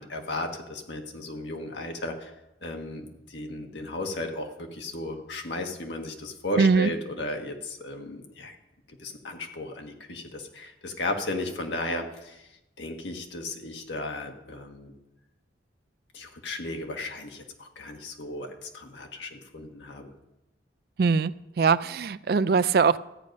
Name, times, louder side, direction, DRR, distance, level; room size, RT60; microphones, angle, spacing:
voice 1, 0.0-2.3 2.6-8.6 9.0-12.4 12.8-14.9 16.1-20.1, left 1 dB, 85° left, 1.6 m, -35 dB
voice 2, 6.6-6.9 21.0-23.0, right 5 dB, 60° right, 0.4 m, -22 dB
13.5 x 9.1 x 5.3 m
head